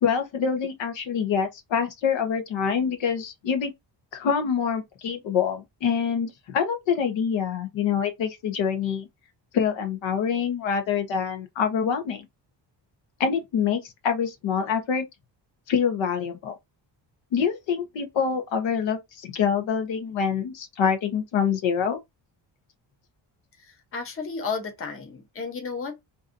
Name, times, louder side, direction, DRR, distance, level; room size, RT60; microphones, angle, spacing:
voice 1, 0.0-3.7 4.1-9.1 9.5-12.2 13.2-15.1 15.7-16.6 17.3-22.0, left 7 dB, 85° left, 1.0 m, -26 dB
voice 2, 23.6-26.0, left 5 dB, 30° left, 0.8 m, -33 dB
3.9 x 2.7 x 2.5 m
cardioid pair, 170°, 45 cm